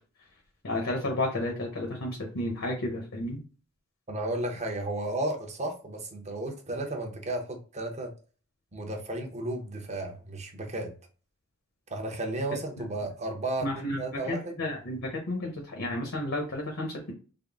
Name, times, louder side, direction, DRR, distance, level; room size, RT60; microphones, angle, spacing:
voice 1, 0.6-3.4 13.6-17.1, left 1 dB, 65° left, 1 dB, 0.8 m, -32 dB
voice 2, 4.1-8.1 8.7-10.9 11.9-14.6, right 1 dB, 30° right, 3 dB, 0.8 m, -33 dB
3.6 x 2.0 x 3.5 m, 0.38 s
head